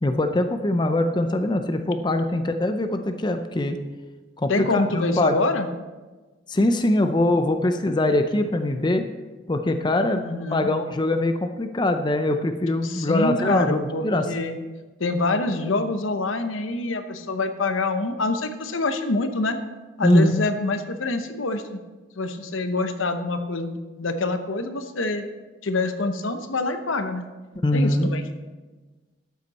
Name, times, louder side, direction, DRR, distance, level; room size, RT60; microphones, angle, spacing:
voice 1, 0.0-3.8 4.4-5.4 6.5-9.1 9.5-10.2 10.5-14.3 20.0-20.4 27.6-28.1, left 1 dB, 20° left, 7 dB, 0.5 m, -22 dB
voice 2, 4.5-5.7 10.1-10.7 12.8-14.6 15.0-19.6 20.0-21.8 22.2-25.2 25.6-27.3 27.7-28.3, left 2 dB, 80° left, 8 dB, 0.9 m, -26 dB
12.5 x 8.2 x 4.2 m, 1.3 s
head